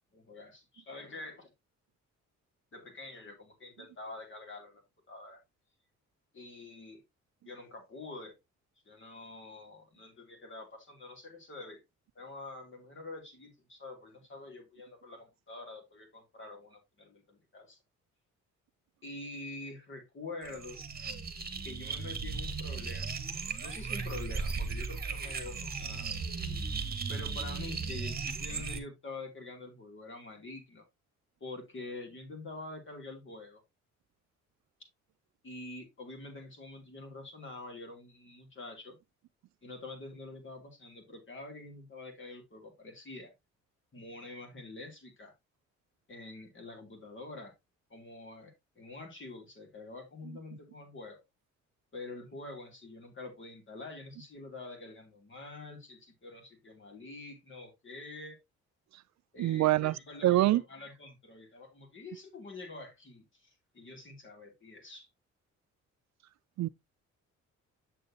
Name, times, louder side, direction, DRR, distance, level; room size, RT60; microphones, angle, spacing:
voice 1, 0.1-1.5 2.7-4.8 5.1-5.4 6.3-7.0 7.4-8.4 8.9-11.8 12.1-17.8 19.0-20.8 21.6-26.1 27.1-30.8 31.4-33.6 35.4-39.0 39.6-43.3 43.9-45.3 46.1-47.5 47.9-51.2 51.9-58.4 59.3-65.1, left 2 dB, 40° left, 3.1 m, -46 dB
sound 1, 20.4-28.8, right 4 dB, 30° right, 1.6 m, -36 dB
voice 2, 59.4-60.6 66.6-66.7, right 15 dB, 65° right, 0.5 m, -26 dB
7.6 x 6.7 x 2.8 m
cardioid pair, 90°, 30 cm